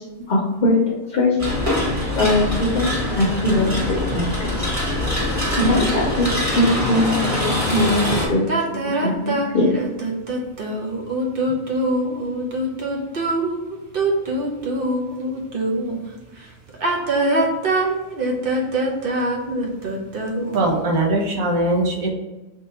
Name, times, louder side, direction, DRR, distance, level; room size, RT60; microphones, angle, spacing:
voice 1, 0.0-1.4 2.2-4.7 5.6-8.4 8.7-9.7, left 1 dB, 45° left, -3 dB, 0.8 m, -21 dB
sound 1, 1.4-8.3, left 1 dB, 10° right, 1.3 m, -23 dB
sound 2, 8.5-16.0 16.7-20.7, right 2 dB, 50° right, 0.8 m, -23 dB
voice 2, 20.5-22.1, right 2 dB, 80° right, 0 dB, 1.3 m, -20 dB
3.7 x 2.8 x 4.2 m, 1.1 s
omnidirectional pair, 1.4 m